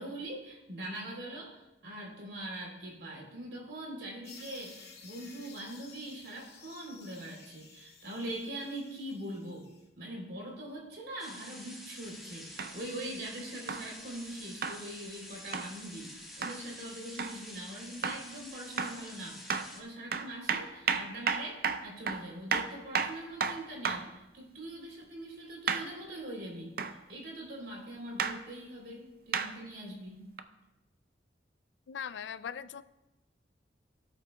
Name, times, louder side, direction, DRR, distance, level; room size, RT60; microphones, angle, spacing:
voice 1, 0.0-9.7 9.9-19.4 19.7-26.8 27.1-30.2, right 1 dB, 75° right, -2 dB, 3.3 m, -42 dB
sound 1, 4.2-9.8, left 5 dB, 60° left, 2.2 m, -54 dB
sound 2, 11.2-19.8, equal, ahead, 1.6 m, -48 dB
sound 3, 12.6-12.8 13.7-13.9 14.6-14.8 15.5-15.7 16.4-16.6 17.2-17.4 18.0-18.3 18.8-19.0 19.5-19.7 20.1-24.1 25.7-25.9 26.8-27.0 28.2-28.4 29.3-29.5 30.4-30.5, right 6 dB, 55° right, 0.5 m, -32 dB
voice 2, 31.9-32.8, left 7 dB, 85° left, 14 dB, 0.4 m, -40 dB
17.5 x 7.9 x 2.2 m, 0.99 s
head